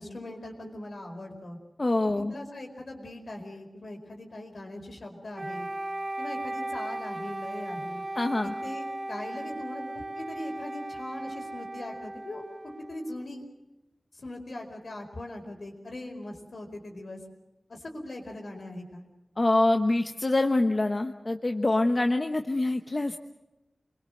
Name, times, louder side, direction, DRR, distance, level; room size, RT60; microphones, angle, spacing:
voice 1, 0.0-1.6 2.2-5.7 6.2-8.0 8.4-9.8 10.1-12.4 12.9-13.4 14.1-17.2 17.7-19.0, left 1 dB, 65° left, 3 dB, 4.8 m, -40 dB
voice 2, 1.8-2.3 8.1-8.5 19.4-23.2, left 2 dB, 40° left, 6 dB, 1.1 m, -25 dB
Wind instrument woodwind instrument, 5.3-13.4, right 1 dB, 35° right, 1.3 m, -37 dB
27.5 x 22.5 x 6.5 m, 1.0 s
wide cardioid pair, 90°, 0 cm